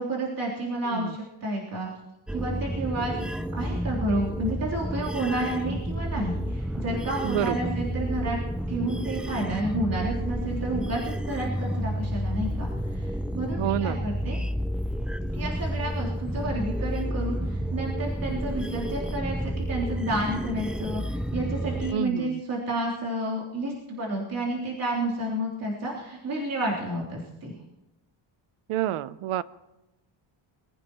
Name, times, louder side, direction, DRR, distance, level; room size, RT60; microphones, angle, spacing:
voice 1, 0.0-1.9 2.3-3.2 3.5-8.4 8.7-14.4 15.3-27.6, right 1 dB, 40° right, -5 dB, 3.5 m, -30 dB
sound 1, 2.3-21.9, equal, ahead, 0.4 m, -30 dB
voice 2, 7.2-7.7 13.6-14.1 21.9-22.4 28.7-29.4, right 12 dB, 80° right, 17 dB, 0.7 m, -28 dB
24.5 x 15.0 x 3.0 m, 0.95 s
cardioid pair, 135°, 50 cm